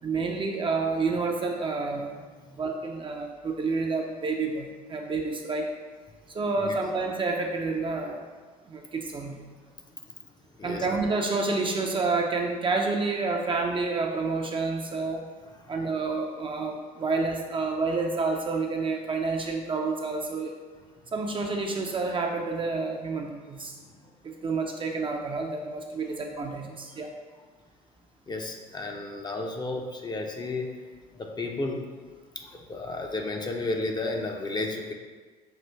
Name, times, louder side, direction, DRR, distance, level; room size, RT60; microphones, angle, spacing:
voice 1, 0.0-2.1 2.6-5.7 6.3-8.2 8.7-9.4 10.6-15.3 15.7-20.5 21.1-23.7 24.2-27.1, right 3 dB, 25° right, 2 dB, 0.5 m, -29 dB
voice 2, 23.8-24.1 26.1-26.2 26.9-27.0 28.3-30.7 31.1-31.8 32.4-34.9, left 2 dB, 20° left, 2 dB, 0.5 m, -33 dB
5.7 x 2.4 x 3.3 m, 1.4 s
hypercardioid pair, 65°, 21 cm